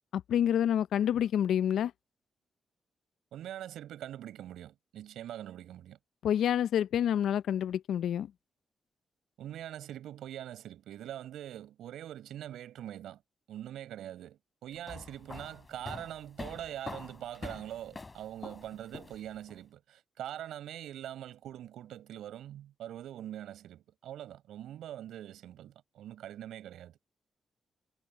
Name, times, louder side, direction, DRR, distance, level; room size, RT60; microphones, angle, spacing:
voice 1, 0.1-1.9 6.2-8.3, left 10 dB, 80° left, 0.6 m, -28 dB
voice 2, 3.3-6.0 9.4-13.2 13.5-27.0, right 11 dB, 85° right, 6.6 m, -43 dB
sound 1, 14.7-19.6, left 3 dB, 35° left, 3.4 m, -45 dB
supercardioid pair, 50°, 0 cm